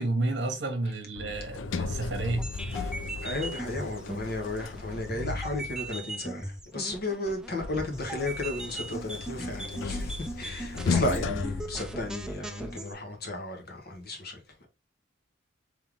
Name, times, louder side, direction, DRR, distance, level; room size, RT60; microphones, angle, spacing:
voice 1, 0.0-3.0, right 2 dB, 60° right, 1.1 m, -31 dB
Sliding door, 1.2-6.0 7.6-12.5, left 4 dB, 75° left, 0.4 m, -35 dB
sound 1, 2.3-12.9, right 1 dB, 5° right, 0.3 m, -39 dB
voice 2, 3.2-14.7, left 2 dB, 50° left, 1.3 m, -34 dB
3.6 x 3.4 x 3.3 m
head